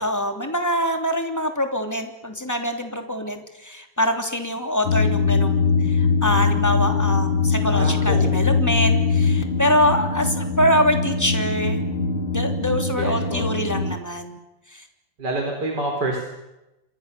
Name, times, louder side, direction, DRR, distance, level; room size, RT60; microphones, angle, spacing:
voice 1, 0.0-11.8 12.3-14.4 14.7-14.8, equal, 10° left, 5 dB, 3.2 m, -24 dB
sound 1, 4.9-14.0, left 4 dB, 75° left, 2.8 m, -22 dB
voice 2, 7.6-8.5 13.0-13.4 15.2-16.3, right 2 dB, 55° right, 1 dB, 5.0 m, -27 dB
28.5 x 26.0 x 6.9 m, 0.94 s
omnidirectional pair, 2.1 m